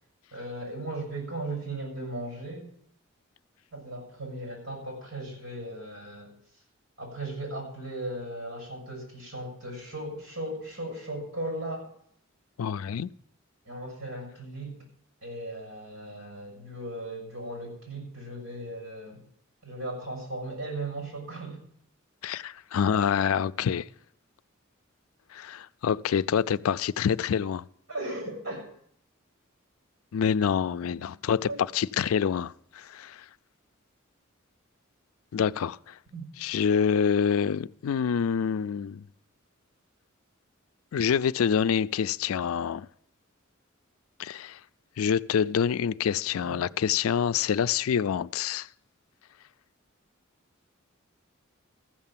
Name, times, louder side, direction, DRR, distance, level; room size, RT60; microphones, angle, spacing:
voice 1, 0.3-2.7 3.7-6.3 7.0-11.9 13.6-14.8 15.2-19.2 19.6-21.6 27.9-28.7 30.9-31.0 31.5-31.6 36.1-36.3 46.4-46.7, right 1 dB, 90° right, 6.4 m, -37 dB
voice 2, 12.6-13.1 22.2-23.9 25.3-27.6 30.1-33.2 35.3-35.9 36.4-39.0 40.9-42.9 44.2-44.6 45.0-48.7, left 7 dB, 90° left, 0.4 m, -26 dB
14.5 x 6.8 x 7.3 m
head